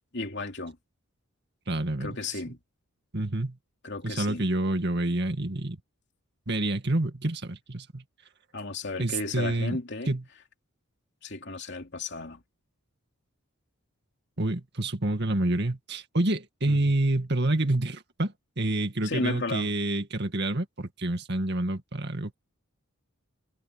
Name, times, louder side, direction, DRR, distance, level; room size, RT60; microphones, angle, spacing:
voice 1, 0.1-0.8 2.0-2.6 3.8-4.5 8.5-10.1 11.2-12.4 16.7-16.9 19.0-19.7, left 3 dB, 55° left, 2.9 m, -34 dB
voice 2, 1.7-2.2 3.1-3.6 4.0-5.8 6.5-8.0 9.0-9.8 10.1-10.2 14.4-22.4, right 1 dB, 50° right, 2.1 m, -28 dB
head